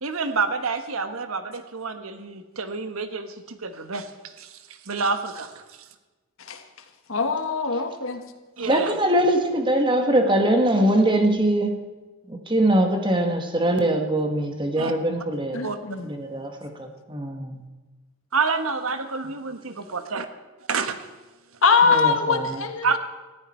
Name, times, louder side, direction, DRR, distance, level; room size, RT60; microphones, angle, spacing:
voice 1, 0.0-4.5 4.9-5.5 8.6-8.9 14.8-14.9 15.6-15.8 18.3-20.3 20.7-21.0 21.9-22.0 22.8-23.0, right 4 dB, 80° right, 9 dB, 1.4 m, -28 dB
voice 2, 7.1-8.2 15.5-16.1 21.6-23.0, left 5 dB, 70° left, 7 dB, 1.6 m, -22 dB
voice 3, 8.6-11.8 12.3-15.6 16.0-17.6 21.8-22.6, right 1 dB, 25° right, 4 dB, 1.7 m, -22 dB
19.5 x 14.0 x 4.5 m, 1.2 s
head